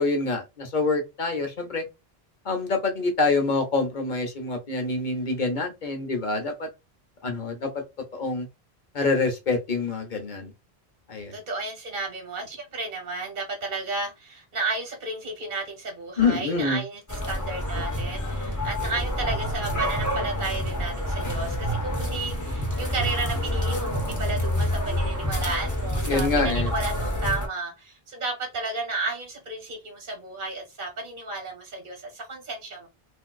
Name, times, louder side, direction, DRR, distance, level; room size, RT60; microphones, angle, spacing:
voice 1, 0.0-1.8 2.4-6.7 7.2-7.7 8.1-8.5 8.9-10.5 11.1-11.3 16.2-16.8 26.0-26.7, left 3 dB, 50° left, 1.0 m, -26 dB
voice 2, 11.3-32.9, right 3 dB, 55° right, 1.1 m, -33 dB
sound 1, 17.1-27.5, equal, 20° left, 1.0 m, -28 dB
3.5 x 2.6 x 2.3 m
omnidirectional pair, 1.0 m